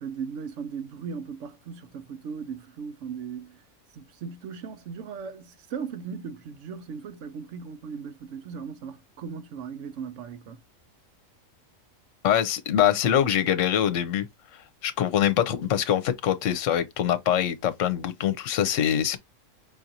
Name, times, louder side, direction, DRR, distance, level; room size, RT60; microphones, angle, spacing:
voice 1, 0.0-3.6 3.9-10.6, right 6 dB, 70° right, 1.0 m, -37 dB
voice 2, 12.2-14.3 14.8-19.2, left 10 dB, 75° left, 1.0 m, -24 dB
5.3 x 2.5 x 2.7 m
omnidirectional pair, 1.3 m